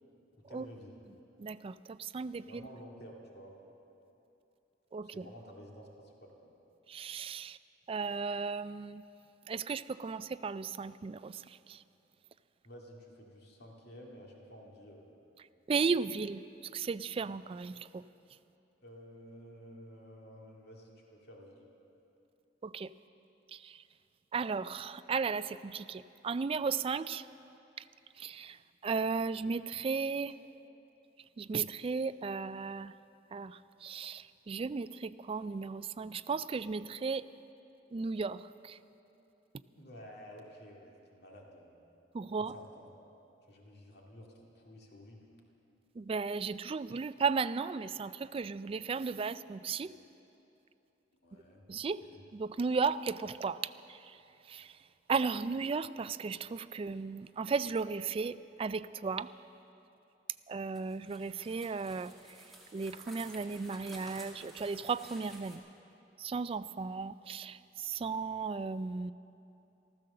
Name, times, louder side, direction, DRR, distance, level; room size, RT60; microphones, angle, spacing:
voice 1, 0.3-1.0 2.5-3.5 5.0-6.5 12.6-15.1 18.8-21.7 39.7-41.7 42.4-42.9 43.5-45.3 51.2-51.6 52.0-52.2, equal, 60° left, -1 dB, 2.1 m, -52 dB
voice 2, 1.4-2.6 4.9-5.3 6.9-7.6 7.9-9.0 9.5-11.8 15.7-16.4 16.7-18.0 22.6-22.9 23.5-23.8 24.3-27.3 27.8-27.9 28.2-30.4 31.4-32.9 33.3-37.3 37.9-38.8 42.1-42.5 46.0-49.9 51.7-52.0 52.3-54.2 54.5-54.7 55.1-59.3 60.5-62.1 62.7-65.6 66.2-69.1, right 5 dB, 30° right, 14 dB, 0.3 m, -35 dB
sound 1, 60.7-65.6, right 1 dB, ahead, 2.2 m, -53 dB
14.5 x 14.0 x 6.7 m, 2.8 s
head